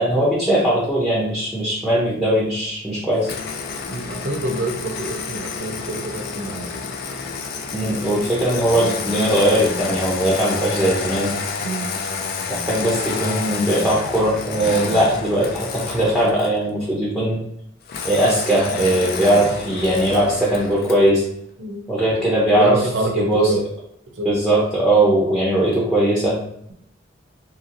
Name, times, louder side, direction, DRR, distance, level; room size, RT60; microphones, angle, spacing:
voice 1, 0.0-3.3 7.7-11.3 12.5-17.4 18.0-21.2 21.9-22.9 23.1-23.5 24.2-26.4, right 1 dB, 5° right, -6 dB, 0.6 m, -19 dB
Engine starting, 3.2-16.6 17.9-21.1, left 5 dB, 50° left, 0.4 m, -29 dB
voice 2, 3.9-6.8 11.6-11.9 21.6-21.8 22.6-23.6 24.2-24.3, right 2 dB, 70° right, 3 dB, 0.6 m, -25 dB
2.8 x 2.8 x 2.5 m, 0.71 s
head